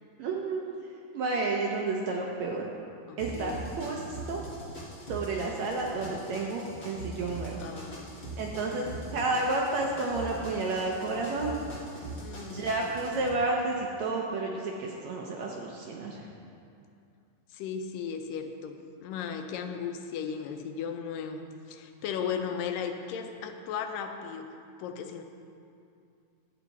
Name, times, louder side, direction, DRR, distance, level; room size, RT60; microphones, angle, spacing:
voice 1, 0.2-0.7 1.1-2.7 3.2-4.4 5.1-7.6 8.4-8.8 9.1-11.6 12.4-16.3, right 3 dB, 75° right, -1 dB, 1.7 m, -31 dB
voice 2, 3.1-3.6 7.6-8.3 12.2-12.7 17.5-24.5 24.8-25.2, left 7 dB, 85° left, 6 dB, 2.3 m, -36 dB
sound 1, 3.2-13.3, right 2 dB, 60° left, 0.6 m, -42 dB
11.5 x 8.8 x 4.1 m, 2.5 s
omnidirectional pair, 3.9 m